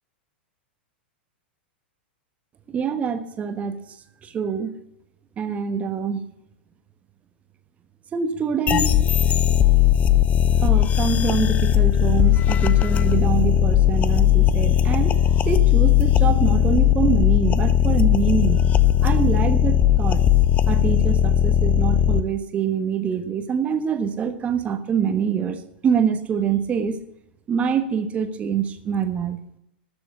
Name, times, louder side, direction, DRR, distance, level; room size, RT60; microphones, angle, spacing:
voice 1, 2.7-3.8 4.2-4.7 5.4-6.2 8.1-9.0 10.6-15.2 15.4-18.7 19.0-20.2 20.6-27.0 27.5-29.4, right 7 dB, 25° right, 9 dB, 1.2 m, -25 dB
sound 1, 8.7-22.2, left 11 dB, 25° left, 0.6 m, -18 dB
13.0 x 7.0 x 7.0 m, 0.79 s
figure-of-eight pair, 90°, 6 cm